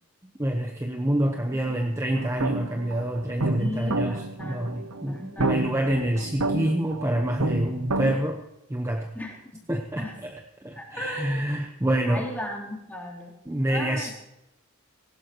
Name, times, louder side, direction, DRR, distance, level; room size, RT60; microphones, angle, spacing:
voice 1, 0.4-8.4 8.7-9.1 9.7-10.3 10.6-12.3 13.5-14.1, right 1 dB, 15° right, 3 dB, 1.0 m, -27 dB
voice 2, 1.1-1.8 3.6-6.3 9.1-9.6 10.0-10.3 10.7-11.5 12.1-13.3 13.7-14.1, left 1 dB, 10° left, -3 dB, 3.3 m, -38 dB
sound 1, 2.1-8.1, right 2 dB, 80° right, 1.0 m, -30 dB
18.0 x 16.5 x 3.0 m, 0.89 s
head